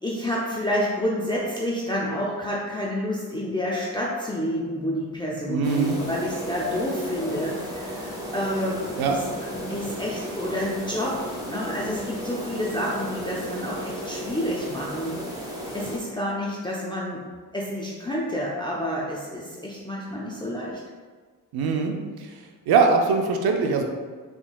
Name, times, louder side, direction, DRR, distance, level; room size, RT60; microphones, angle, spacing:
voice 1, 0.0-9.2 9.7-15.2 15.5-17.2 17.5-20.8, equal, 15° left, -5 dB, 0.5 m, -29 dB
voice 2, 5.5-6.0 9.0-9.1 21.5-22.3 22.7-23.8, right 4 dB, 85° right, 3 dB, 0.5 m, -22 dB
sound 1, 5.6-16.0, equal, 10° right, 1.4 m, -34 dB
3.7 x 3.4 x 2.2 m, 1.5 s
cardioid pair, 55°, 37 cm